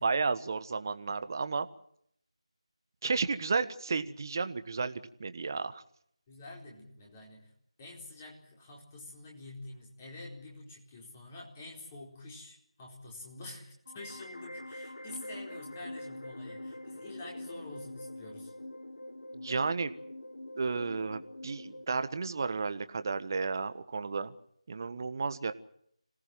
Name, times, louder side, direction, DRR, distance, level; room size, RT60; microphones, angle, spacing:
voice 1, 0.0-1.7 3.0-5.8 19.3-19.9 20.6-24.3 24.7-25.5, right 4 dB, 35° right, 11 dB, 1.4 m, -32 dB
voice 2, 6.3-7.5 7.8-18.5, left 2 dB, 20° left, -1 dB, 4.3 m, -47 dB
sound 1, 13.9-21.9, left 1 dB, 85° left, 1.1 m, -44 dB
26.5 x 18.0 x 7.7 m, 0.69 s
figure-of-eight pair, 165°, 3 cm